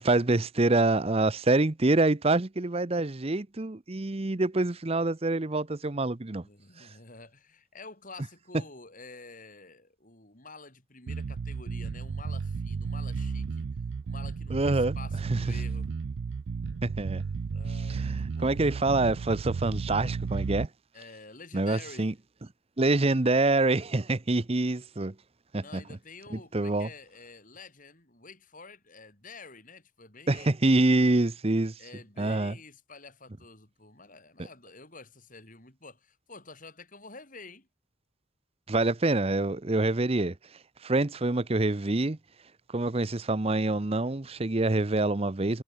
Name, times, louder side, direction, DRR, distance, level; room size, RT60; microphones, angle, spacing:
voice 1, 0.0-6.4 6.8-6.9 14.5-14.9 15.3-15.4 16.8-17.2 17.9-20.7 21.5-22.1 22.8-25.1 25.5-25.8 26.3-26.9 30.3-31.7 32.2-32.6 38.7-40.3 40.8-42.2 42.7-45.6, right 2 dB, 30° right, 0.8 m, -26 dB
voice 2, 6.4-13.7 14.0-15.9 17.5-18.6 20.9-22.1 25.6-30.6 31.8-37.7, left 3 dB, 40° left, 6.6 m, -49 dB
Bass guitar, 11.1-20.7, right 5 dB, 65° right, 0.4 m, -33 dB
head